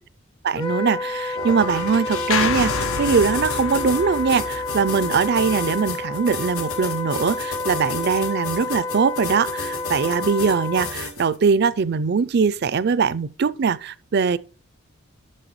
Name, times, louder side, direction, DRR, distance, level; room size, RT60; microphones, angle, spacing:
voice 1, 0.4-14.4, right 5 dB, 50° right, 0.4 m, -21 dB
Wind instrument woodwind instrument, 0.6-11.0, left 3 dB, 25° left, 0.6 m, -30 dB
sound 1, 1.3-11.4, left 4 dB, 85° left, 1.8 m, -33 dB
sound 2, 2.3-6.6, left 6 dB, 65° left, 0.5 m, -30 dB
12.0 x 6.5 x 3.1 m
head